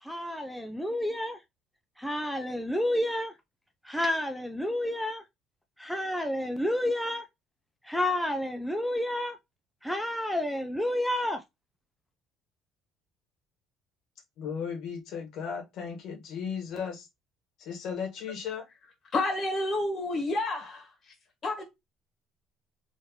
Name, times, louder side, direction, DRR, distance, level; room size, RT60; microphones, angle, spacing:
voice 1, 0.0-1.4 2.0-3.3 3.8-5.2 5.8-7.2 7.8-9.4 9.8-11.4, left 1 dB, ahead, 0.4 m, -30 dB
voice 2, 14.4-17.1 17.6-18.6, left 6 dB, 65° left, 1.5 m, -36 dB
voice 3, 19.1-20.8 21.4-21.6, left 2 dB, 40° left, 1.8 m, -29 dB
3.5 x 3.1 x 3.0 m
cardioid pair, 130°, 0 cm